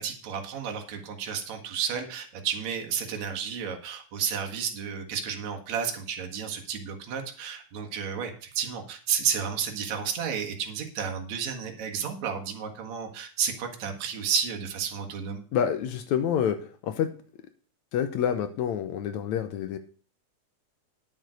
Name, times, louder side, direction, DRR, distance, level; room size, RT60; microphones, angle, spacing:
voice 1, 0.0-15.4, right 7 dB, 65° right, 3 dB, 2.8 m, -32 dB
voice 2, 15.5-17.1 17.9-19.8, left 8 dB, 70° left, 10 dB, 2.0 m, -27 dB
10.0 x 7.2 x 6.3 m, 0.40 s
omnidirectional pair, 3.6 m